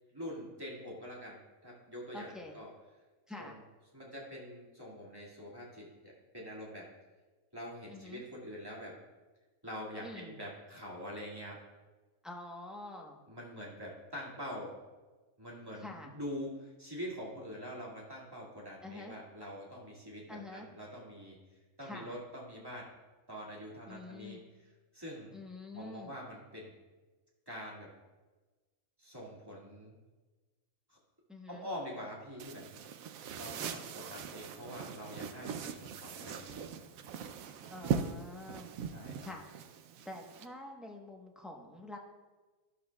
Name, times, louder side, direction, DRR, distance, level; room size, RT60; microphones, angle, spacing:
voice 1, 0.1-2.7 3.4-3.6 3.9-6.9 7.5-9.0 9.6-11.6 13.3-14.8 15.4-22.9 23.3-24.4 24.9-25.3 25.7-26.7 27.5-27.9 29.0-30.0 30.9-31.0 31.5-32.7 33.3-36.6 38.9-39.3, equal, 15° right, -5 dB, 2.2 m, -45 dB
voice 2, 2.1-2.5 3.3-3.6 7.9-8.2 10.0-10.4 12.2-13.2 15.7-16.2 18.8-19.2 20.3-20.7 21.8-22.2 23.9-24.4 25.3-26.1 31.3-31.7 37.7-38.7 39.2-39.5 40.0-42.0, left 2 dB, ahead, 0 dB, 0.9 m, -47 dB
sound 1, 32.4-40.5, right 7 dB, 75° right, 1.0 m, -40 dB
12.5 x 12.0 x 2.3 m, 1.3 s
omnidirectional pair, 1.5 m